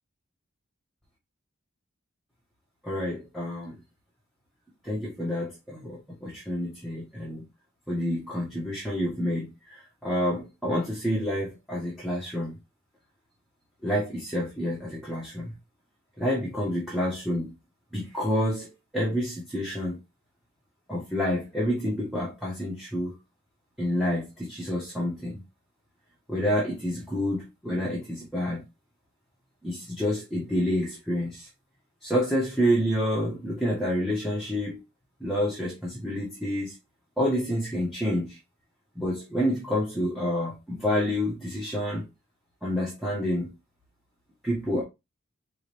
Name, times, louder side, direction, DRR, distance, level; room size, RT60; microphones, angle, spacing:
voice 1, 2.8-3.8 4.8-7.4 7.9-12.5 13.8-15.5 16.2-17.5 17.9-20.0 20.9-23.2 23.8-25.4 26.3-28.6 29.6-31.5 32.0-34.8 35.2-36.7 37.2-38.4 38.9-42.1 42.6-43.5 44.4-44.8, equal, ahead, 1.3 m, -28 dB
4.8 x 3.2 x 3.4 m
head